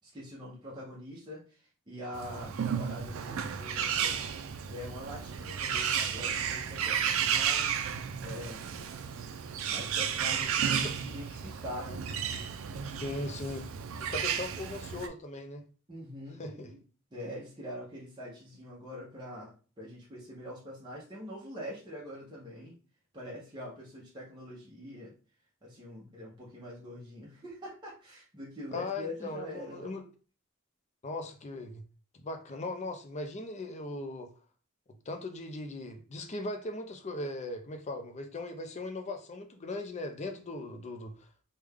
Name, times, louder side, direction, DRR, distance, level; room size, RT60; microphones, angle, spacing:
voice 1, 0.0-4.2 4.7-7.9 8.2-8.6 9.7-12.0 15.9-16.8 17.1-22.7 23.1-25.1 25.6-29.9, equal, 20° right, 0.8 m, -44 dB
Bird, 2.1-15.1, right 8 dB, 70° right, 0.4 m, -33 dB
voice 2, 13.0-13.7 14.0-15.6 16.4-16.7 28.7-30.0 31.0-31.8 32.1-34.3 35.1-41.3, left 2 dB, 35° left, 0.5 m, -38 dB
3.4 x 2.2 x 3.4 m
head